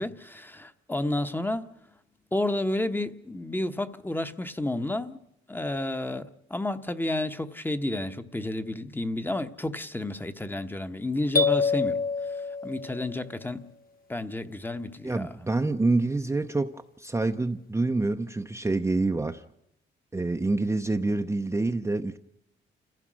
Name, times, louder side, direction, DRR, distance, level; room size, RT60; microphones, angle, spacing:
voice 1, 0.0-1.7 2.3-5.2 5.5-12.0 12.6-13.7 14.1-15.3, left 1 dB, 10° left, 0.9 m, -31 dB
sound 1, 11.4-13.3, left 4 dB, 45° left, 1.6 m, -26 dB
voice 2, 15.0-19.4 20.1-22.2, right 2 dB, 15° right, 0.6 m, -27 dB
28.0 x 15.0 x 6.2 m
cardioid pair, 90°, 20 cm